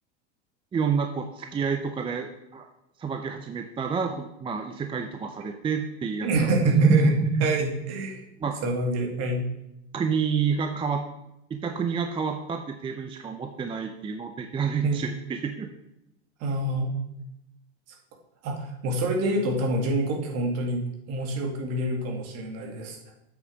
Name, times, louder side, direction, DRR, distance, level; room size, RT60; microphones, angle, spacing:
voice 1, 0.7-2.7 3.0-7.5 8.4-8.6 9.9-11.0 11.5-15.7, right 5 dB, 15° right, 6 dB, 0.5 m, -28 dB
voice 2, 6.2-7.1 7.4-8.2 8.6-9.5 14.8-15.0 16.4-16.9 18.4-23.0, right 1 dB, 45° right, 2 dB, 2.1 m, -27 dB
8.1 x 6.4 x 5.1 m, 0.86 s
supercardioid pair, 115°, 34 cm